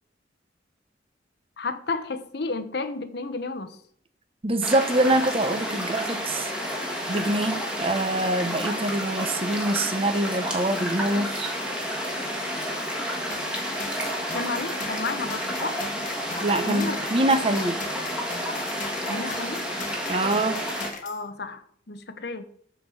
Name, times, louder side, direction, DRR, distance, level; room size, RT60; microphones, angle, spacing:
voice 1, 1.6-3.8 14.3-15.8 16.6-17.0 19.1-19.6 21.0-22.4, left 3 dB, 60° left, 10 dB, 0.9 m, -32 dB
voice 2, 4.4-6.5 7.1-11.6 16.4-17.8 20.1-20.6, right 1 dB, 30° right, 8 dB, 1.0 m, -25 dB
sound 1, 4.6-20.9, equal, 5° right, 1.9 m, -30 dB
sound 2, 13.3-21.2, left 4 dB, 45° left, 1.3 m, -40 dB
13.0 x 4.6 x 4.9 m, 0.62 s
head